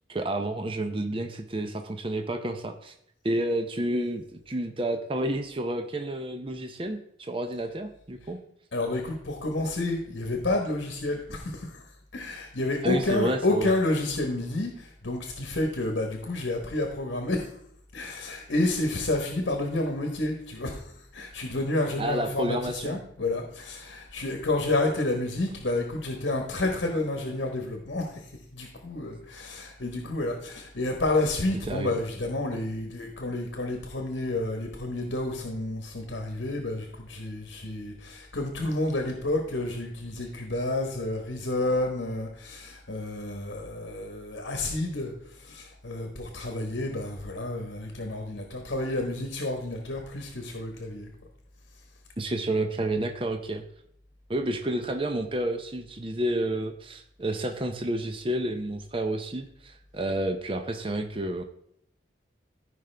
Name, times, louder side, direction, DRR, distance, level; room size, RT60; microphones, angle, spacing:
voice 1, 0.1-2.9 3.2-8.4 12.8-13.7 22.0-23.0 31.7-31.9 52.2-53.6 54.3-61.4, right 1 dB, 30° right, 6 dB, 0.6 m, -30 dB
voice 2, 8.7-11.8 12.1-17.5 17.9-51.1, left 2 dB, 70° left, 3 dB, 1.2 m, -30 dB
14.0 x 5.2 x 3.4 m, 0.71 s
head